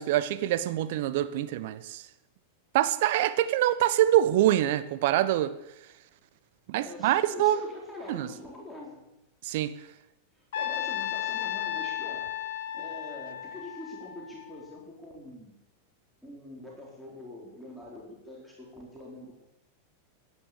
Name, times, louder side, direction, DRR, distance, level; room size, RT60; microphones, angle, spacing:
voice 1, 0.0-2.1 2.7-5.5 6.7-7.6 8.1-8.3 9.4-9.7, right 13 dB, 50° right, 1.0 m, -25 dB
voice 2, 6.7-9.0 10.3-12.3 12.7-15.6 16.2-19.3, left 1 dB, ahead, 4.5 m, -44 dB
Trumpet, 10.5-14.7, left 11 dB, 55° left, 1.2 m, -34 dB
16.5 x 10.5 x 8.4 m
figure-of-eight pair, 90°, 0 cm